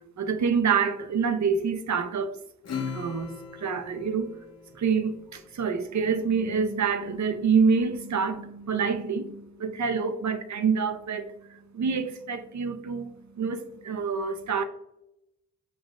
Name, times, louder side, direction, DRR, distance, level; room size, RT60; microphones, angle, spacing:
voice 1, 0.2-2.3 2.9-3.3 3.6-4.3 4.8-11.3 11.7-13.1 13.4-14.6, right 5 dB, 55° right, 0.6 m, -26 dB
Acoustic guitar / Strum, 2.6-5.6, left 5 dB, 45° left, 0.8 m, -38 dB
6.0 x 2.4 x 2.4 m
cardioid pair, 50°, 35 cm